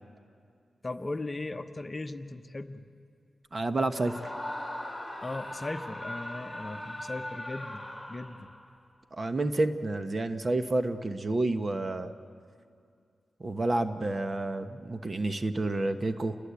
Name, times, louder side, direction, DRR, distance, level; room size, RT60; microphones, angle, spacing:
voice 1, 0.8-2.8 5.2-8.5, left 2 dB, 30° left, 7 dB, 1.1 m, -38 dB
voice 2, 3.5-4.3 9.1-12.1 13.4-16.4, right 2 dB, 40° right, 8 dB, 1.2 m, -29 dB
Screaming, 3.9-8.7, left 1 dB, 5° right, 3.3 m, -39 dB
29.0 x 20.5 x 8.4 m, 2.3 s
cardioid pair, 75°, 0 cm